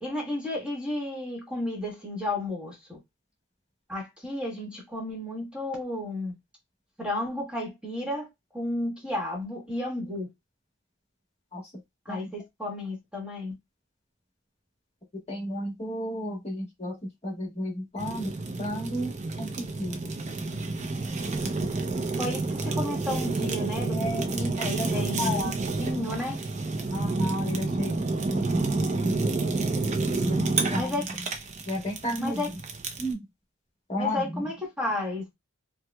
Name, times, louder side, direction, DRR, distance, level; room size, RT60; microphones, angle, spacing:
voice 1, 0.0-3.0 3.9-6.3 7.0-8.3 8.5-10.3 12.0-13.5 22.2-25.5 25.8-26.4 30.7-31.0 32.2-32.5 34.0-35.3, left 1 dB, 5° right, 1.2 m, -32 dB
voice 2, 15.3-17.0 17.2-18.3 18.6-19.1 19.4-20.0 23.9-24.3 24.6-25.5 26.9-29.2 30.1-30.9 31.7-32.4 33.0-33.2 33.9-34.4, equal, 30° left, 1.3 m, -33 dB
Fire, 18.0-33.1, right 3 dB, 35° right, 0.5 m, -29 dB
4.5 x 2.1 x 2.3 m
head